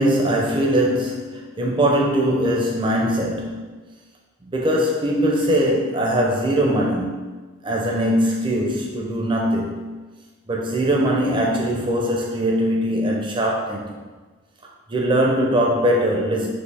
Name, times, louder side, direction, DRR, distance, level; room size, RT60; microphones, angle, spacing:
voice 1, 0.0-3.7 4.4-7.3 7.6-10.0 10.5-13.9 14.9-16.5, equal, 25° right, -1 dB, 0.5 m, -21 dB
4.1 x 2.7 x 3.4 m, 1.3 s
head